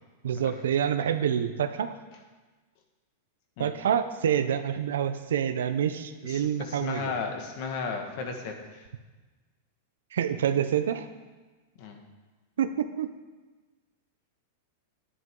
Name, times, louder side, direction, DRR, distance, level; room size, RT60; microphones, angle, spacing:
voice 1, 0.2-2.0 3.6-7.1 10.1-11.1 12.6-13.1, right 9 dB, 85° right, 10 dB, 0.7 m, -27 dB
voice 2, 6.2-8.8 11.8-12.0, left 5 dB, 55° left, 3 dB, 1.8 m, -35 dB
11.0 x 9.8 x 3.8 m, 1.3 s
hypercardioid pair, 130°, 0 cm